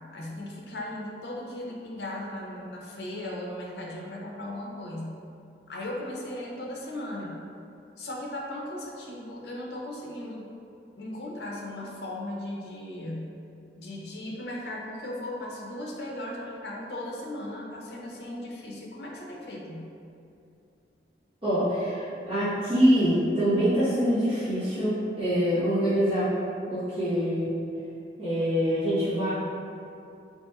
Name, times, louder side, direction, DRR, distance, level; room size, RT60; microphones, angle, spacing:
voice 1, 0.1-5.1 5.7-7.4 8.0-10.5 11.0-13.3 13.8-19.8, left 1 dB, 70° left, -2 dB, 0.6 m, -37 dB
voice 2, 21.4-26.3 26.7-27.5 28.2-29.3, equal, 30° right, -17 dB, 1.2 m, -25 dB
4.2 x 2.9 x 2.3 m, 2.6 s
head